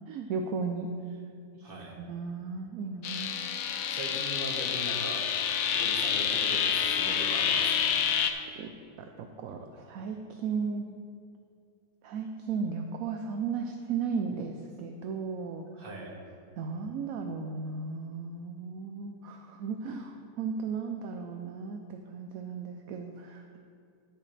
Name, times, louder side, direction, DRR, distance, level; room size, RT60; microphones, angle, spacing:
voice 1, 0.1-0.9 1.5-1.7 2.0-3.4 8.6-8.7 9.0-11.0 12.0-15.7 16.6-23.6, right 5 dB, 70° right, 4 dB, 0.9 m, -35 dB
voice 2, 1.6-2.0 3.9-5.2 5.7-8.0 15.8-16.1, right 1 dB, 35° right, -3 dB, 1.7 m, -40 dB
sound 1, 3.0-8.3, left 8 dB, 65° left, 0.9 m, -28 dB
10.5 x 9.9 x 3.3 m, 2.3 s
omnidirectional pair, 1.8 m